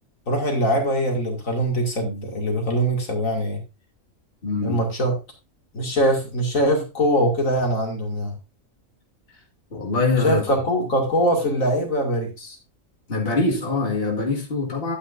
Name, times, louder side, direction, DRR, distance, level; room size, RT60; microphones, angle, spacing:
voice 1, 0.3-3.6 4.6-5.2 5.7-8.3 10.2-12.6, equal, 80° left, 2.7 m, -22 dB
voice 2, 4.4-4.8 9.7-10.4 13.1-15.0, left 3 dB, 45° left, 2.2 m, -23 dB
11.0 x 9.0 x 2.6 m
omnidirectional pair, 1.4 m